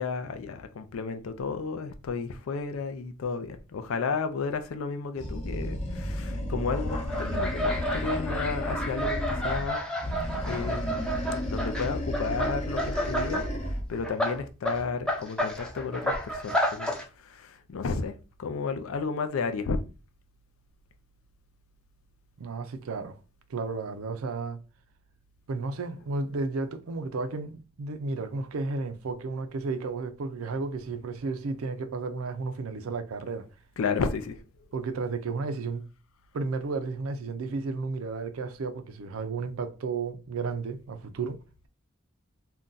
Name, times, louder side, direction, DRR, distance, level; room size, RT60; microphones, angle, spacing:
voice 1, 0.0-9.8 10.5-11.2 11.4-13.4 13.9-16.9 17.2-18.1 18.4-19.8 33.8-34.4, left 5 dB, 70° left, 0.4 m, -32 dB
Animal, 5.2-9.7 10.0-13.9, equal, 35° left, 0.7 m, -33 dB
sound 1, 6.7-13.5 13.8-17.1, equal, 5° left, 0.5 m, -31 dB
voice 2, 22.4-23.1 23.5-24.6 25.5-33.5 34.7-35.8 36.3-41.4, right 4 dB, 80° right, 0.4 m, -33 dB
2.6 x 2.2 x 3.7 m
head